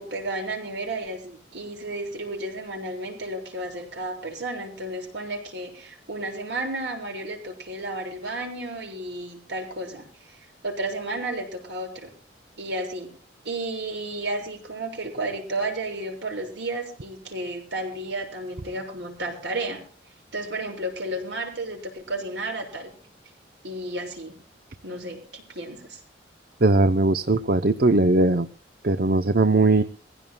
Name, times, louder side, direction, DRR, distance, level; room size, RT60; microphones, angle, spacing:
voice 1, 0.0-12.1 12.6-13.1 13.4-19.8 20.3-22.9 23.6-24.4 24.8-26.0, right 2 dB, 75° right, 3 dB, 6.7 m, -32 dB
voice 2, 26.6-28.5 28.8-29.8, right 2 dB, 55° right, 10 dB, 0.8 m, -19 dB
24.0 x 16.0 x 2.3 m, 0.42 s
head